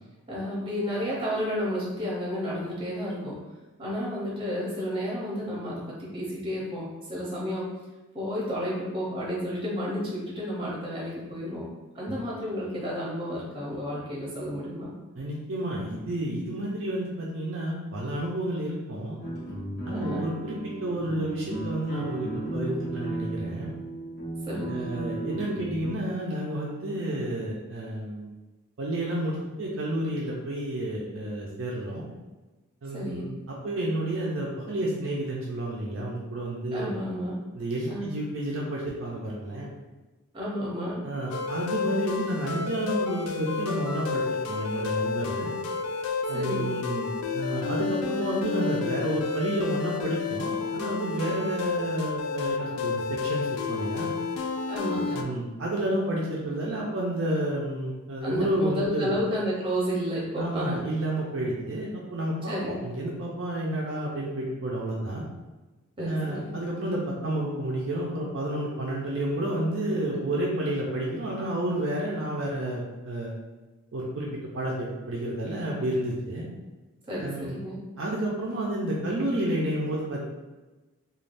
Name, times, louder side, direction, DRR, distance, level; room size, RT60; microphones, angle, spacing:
voice 1, 0.3-3.4 3.8-7.7 8.1-11.7 11.9-14.9 19.9-20.3 24.5-24.9 32.9-33.3 36.7-37.4 37.9-38.1 40.3-41.0 46.3-46.7 51.3-51.5 54.7-55.2 58.2-60.8 62.5-62.8 66.0-66.5 77.1-77.8, equal, 25° right, -6 dB, 0.8 m, -31 dB
voice 2, 15.2-19.2 19.8-23.7 24.7-28.3 28.8-32.1 32.8-37.0 37.5-39.7 41.0-45.5 46.3-54.1 55.1-59.2 60.4-65.2 66.0-73.3 73.9-74.3 74.5-76.5 77.2-77.6 78.0-80.2, right 1 dB, 60° right, -4 dB, 0.4 m, -30 dB
sound 1, 19.2-25.9, right 2 dB, 45° left, 0.9 m, -35 dB
sound 2, 41.3-55.2, left 5 dB, 85° left, 0.3 m, -31 dB
3.2 x 2.3 x 2.5 m, 1.2 s
head